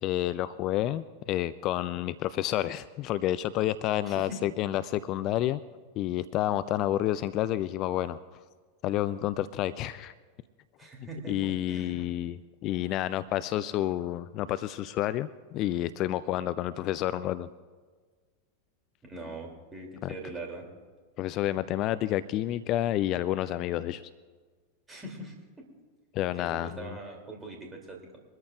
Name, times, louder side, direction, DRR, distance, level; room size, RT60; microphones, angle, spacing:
voice 1, 0.0-5.6 6.0-8.2 8.8-10.1 11.0-17.5 20.0-20.1 21.2-24.0 26.1-27.0, left 13 dB, 40° left, 15 dB, 0.4 m, -29 dB
voice 2, 4.1-4.4 10.8-12.1 19.0-20.7 24.9-25.7 26.3-28.0, right 2 dB, 15° right, 0 dB, 2.9 m, -42 dB
23.0 x 13.5 x 2.5 m, 1.5 s
figure-of-eight pair, 90°, 0 cm